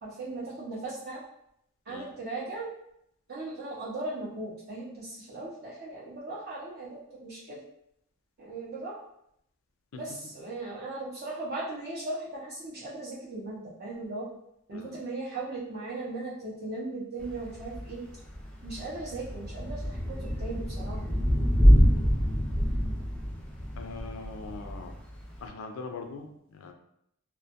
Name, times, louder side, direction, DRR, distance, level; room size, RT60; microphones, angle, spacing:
voice 1, 0.0-1.2 1.9-2.7 3.3-7.6 8.4-9.0 9.9-14.3 14.7-18.0 18.6-21.0, right 2 dB, 50° right, -8 dB, 0.5 m, -38 dB
voice 2, 14.7-15.0 23.7-24.9 25.4-26.7, left 4 dB, 85° left, 4 dB, 0.3 m, -41 dB
Thunder / Rain, 17.2-25.5, equal, 5° left, 0.3 m, -26 dB
2.1 x 2.1 x 2.7 m, 0.76 s
head